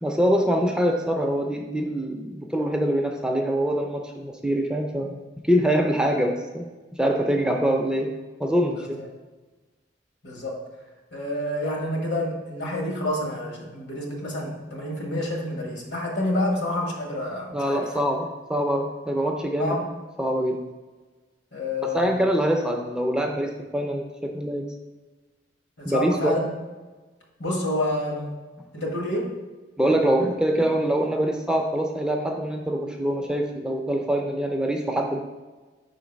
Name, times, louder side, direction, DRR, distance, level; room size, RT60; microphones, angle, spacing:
voice 1, 0.0-6.7 7.0-8.1 8.4-8.9 17.5-19.8 20.2-20.6 21.9-24.7 25.9-26.4 29.8-35.2, equal, 5° right, 1 dB, 0.4 m, -24 dB
voice 2, 8.7-9.1 10.2-10.6 11.1-17.8 19.6-19.8 21.5-22.2 25.8-26.5 27.4-28.3 28.7-29.3, left 1 dB, 70° left, -1 dB, 1.4 m, -28 dB
5.2 x 3.9 x 5.1 m, 1.2 s
head